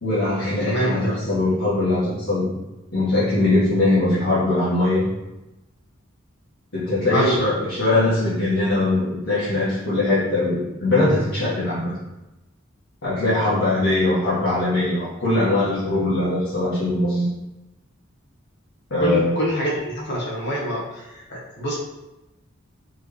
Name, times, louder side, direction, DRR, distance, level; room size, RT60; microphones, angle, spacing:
voice 1, 0.0-2.6 2.9-5.1 6.7-11.9 13.0-17.3 18.9-19.4, left 2 dB, 90° left, -11 dB, 1.5 m, -21 dB
voice 2, 0.7-1.1 7.1-7.4 19.0-21.8, right 1 dB, 60° left, -4 dB, 1.4 m, -25 dB
4.6 x 3.2 x 3.2 m, 1.0 s
head